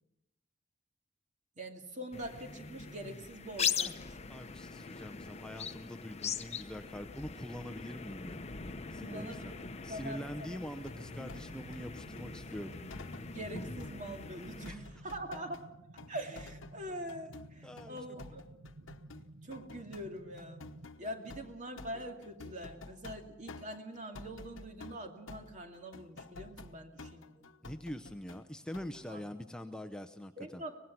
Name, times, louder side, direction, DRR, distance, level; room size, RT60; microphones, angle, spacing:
voice 1, 1.6-4.4 9.0-9.6 9.9-10.6 13.3-15.6 16.1-18.4 19.4-20.7 21.0-27.5 29.1-29.2 30.4-30.8, right 1 dB, 40° right, 4 dB, 2.4 m, -44 dB
sound 1, 2.1-14.7, left 6 dB, 35° left, 0.8 m, -41 dB
voice 2, 4.3-8.5 8.9-9.5 9.8-12.7 14.7-14.8 17.6-18.0 27.6-30.6, equal, 5° left, 8 dB, 0.6 m, -44 dB
sound 2, 10.9-13.3 13.5-15.6 16.0-28.5 28.7-29.1, left 3 dB, 80° left, 1.0 m, -51 dB
sound 3, 10.9-20.9, right 2 dB, 90° right, 0.8 m, -54 dB
24.0 x 19.0 x 5.9 m, 0.90 s
head